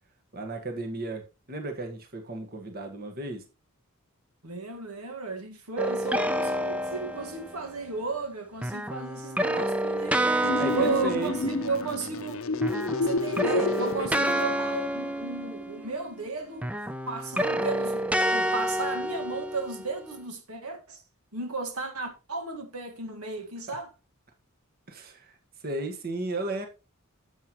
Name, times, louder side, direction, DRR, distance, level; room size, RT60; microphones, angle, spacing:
voice 1, 0.3-3.4 10.6-11.3 23.7-23.8 24.9-25.3 25.6-26.7, right 2 dB, 40° right, 1.5 m, -34 dB
voice 2, 4.4-10.2 10.7-12.4 13.0-16.7 17.1-21.0 21.3-23.9, right 4 dB, 80° right, 1.6 m, -34 dB
sound 1, 5.8-7.7 8.6-12.3 12.5-16.2 16.6-20.0, right 1 dB, 5° right, 0.4 m, -29 dB
sound 2, 10.4-14.4, left 3 dB, 60° left, 0.7 m, -30 dB
10.0 x 7.7 x 3.0 m
head